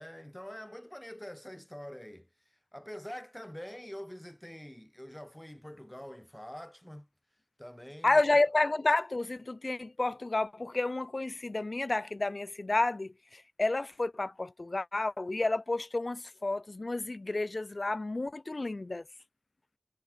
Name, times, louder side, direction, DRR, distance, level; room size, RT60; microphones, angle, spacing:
voice 1, 0.0-2.3 2.7-7.1 7.6-8.2, equal, 10° left, 5.8 m, -45 dB
voice 2, 8.0-19.0, left 2 dB, 45° left, 4.5 m, -30 dB
wide cardioid pair, 55°, 0 cm